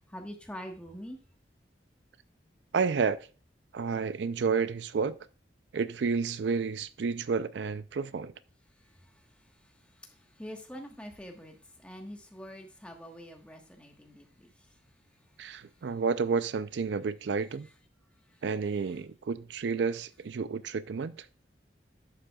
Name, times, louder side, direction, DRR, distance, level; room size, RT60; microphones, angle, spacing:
voice 1, 0.1-1.2 10.4-11.5 11.8-14.5, equal, 5° left, 1.3 m, -44 dB
voice 2, 2.7-3.2 3.7-5.2 5.7-8.3 15.4-17.7 18.4-21.3, right 5 dB, 80° right, 0.4 m, -30 dB
10.5 x 7.6 x 2.3 m
head